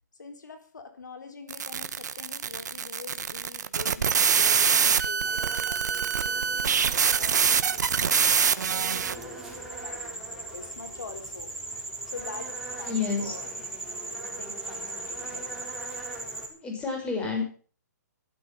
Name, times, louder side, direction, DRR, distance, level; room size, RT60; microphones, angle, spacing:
voice 1, 0.2-11.5 12.0-13.6 14.4-15.5, left 4 dB, 85° left, 7 dB, 3.8 m, -45 dB
sound 1, 1.5-9.2, right 7 dB, 75° right, 1.2 m, -24 dB
sound 2, 5.2-16.5, right 2 dB, 5° right, 4.1 m, -39 dB
voice 2, 12.9-13.3 16.5-17.4, left 5 dB, 10° left, 1 dB, 5.9 m, -29 dB
15.0 x 13.0 x 5.7 m, 0.41 s
hypercardioid pair, 150°, 10 cm